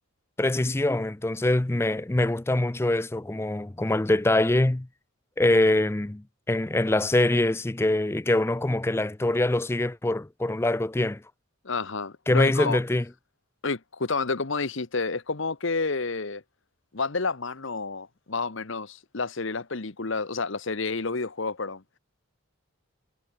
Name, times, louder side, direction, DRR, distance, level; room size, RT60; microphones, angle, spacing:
voice 1, 0.4-4.9 5.4-11.2 12.3-13.0, left 1 dB, 10° left, 0.4 m, -24 dB
voice 2, 11.6-12.8 13.6-16.4 16.9-21.8, left 4 dB, 60° left, 1.1 m, -30 dB
head